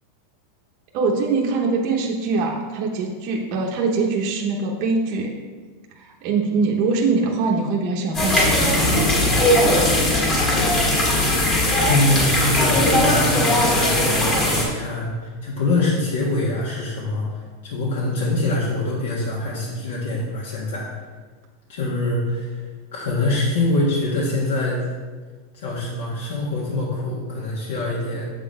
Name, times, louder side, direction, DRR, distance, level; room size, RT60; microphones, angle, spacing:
voice 1, 0.9-5.3 6.0-9.4, right 4 dB, 40° right, -1 dB, 0.7 m, -23 dB
sound 1, 8.1-14.6, left 1 dB, 25° left, 1.8 m, -19 dB
voice 2, 11.8-20.9 21.7-22.6 22.9-24.9 25.5-28.3, left 2 dB, 75° left, -5 dB, 1.5 m, -24 dB
7.2 x 3.9 x 5.1 m, 1.4 s
supercardioid pair, 170°, 0 cm